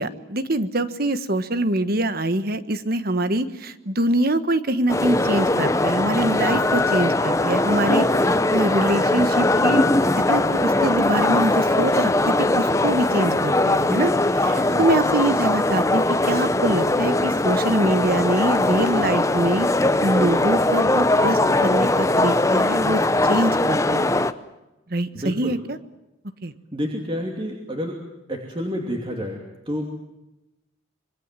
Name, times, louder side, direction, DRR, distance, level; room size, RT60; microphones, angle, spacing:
voice 1, 0.0-9.9 10.3-14.1 14.4-19.7 20.0-23.0 23.3-24.3 24.9-25.8 26.4-26.5, right 1 dB, 50° right, 12 dB, 1.4 m, -24 dB
sound 1, 4.9-24.3, left 2 dB, 15° left, 0.8 m, -20 dB
voice 2, 6.3-6.7 14.5-14.9 25.1-25.6 26.7-28.0 28.3-29.8, equal, 25° right, 1 dB, 2.8 m, -30 dB
26.5 x 23.0 x 7.6 m, 0.97 s
head